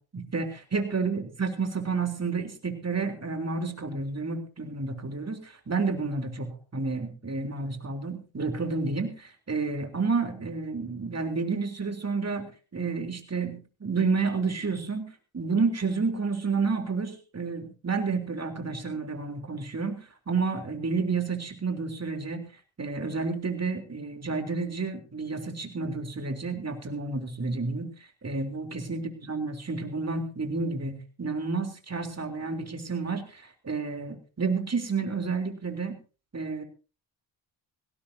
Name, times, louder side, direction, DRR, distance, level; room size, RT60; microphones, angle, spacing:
voice 1, 0.1-15.1 15.3-22.5 22.8-27.9 28.2-36.0 36.3-36.6, right 4 dB, 30° right, 6 dB, 3.5 m, -30 dB
19.0 x 17.0 x 2.8 m, 0.34 s
cardioid pair, 65°, 50 cm